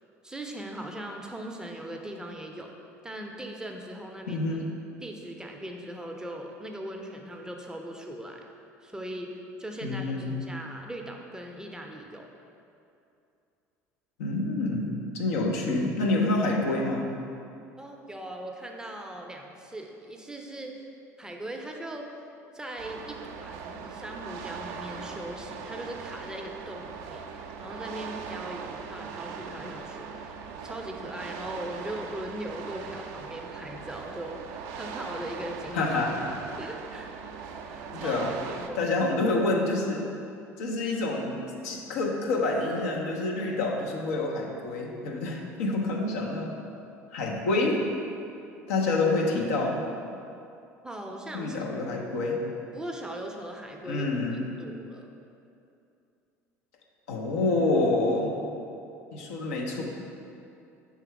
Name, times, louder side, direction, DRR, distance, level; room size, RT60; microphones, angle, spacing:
voice 1, 0.2-2.7 3.0-4.5 5.0-8.4 8.8-9.3 9.6-12.3 17.8-20.7 21.2-22.1 22.5-30.3 30.6-35.8 36.6-37.1 37.7-38.2 38.5-38.9 50.8-51.6 52.7-55.1, right 1 dB, 10° right, 1 dB, 0.6 m, -39 dB
voice 2, 4.3-4.6 9.8-10.4 14.2-17.1 35.7-36.1 37.9-38.3 38.8-40.1 40.6-41.4 41.6-46.5 47.1-47.8 48.7-49.8 51.3-52.4 53.8-54.4 57.1-58.3 59.1-59.8, left 2 dB, 65° left, -1 dB, 0.7 m, -27 dB
sound 1, 22.8-38.7, right 6 dB, 55° right, 0.4 m, -40 dB
5.8 x 3.5 x 4.6 m, 2.6 s
figure-of-eight pair, 65°, 8 cm